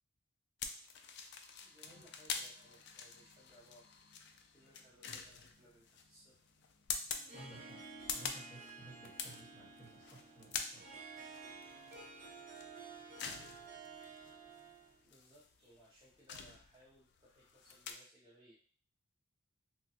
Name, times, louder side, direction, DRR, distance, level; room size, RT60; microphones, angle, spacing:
sound 1, 0.6-17.9, left 6 dB, 55° left, 0.3 m, -46 dB
voice 1, 1.6-3.8 4.5-6.4 15.0-18.5, equal, 20° right, -9 dB, 0.7 m, -64 dB
sound 2, 1.8-8.1, equal, 75° left, 0.8 m, -72 dB
Harp, 7.1-15.0, right 4 dB, 40° right, 1.1 m, -52 dB
voice 2, 7.3-7.8 8.1-10.9, right 1 dB, 5° left, -10 dB, 1.5 m, -56 dB
3.2 x 2.3 x 2.7 m, 0.43 s
head